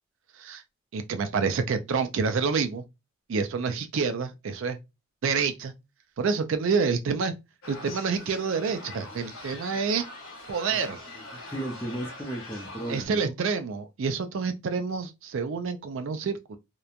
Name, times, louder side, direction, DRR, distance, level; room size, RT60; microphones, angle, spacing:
voice 1, 0.9-2.8 3.3-4.8 5.2-5.7 6.2-7.3 7.7-10.0 10.5-11.0 12.9-16.6, right 5 dB, 60° right, 0.4 m, -28 dB
sound 1, 7.6-13.0, left 2 dB, 80° left, 1.0 m, -43 dB
voice 2, 11.5-13.3, right 1 dB, 10° left, 0.5 m, -35 dB
2.9 x 2.1 x 2.4 m
head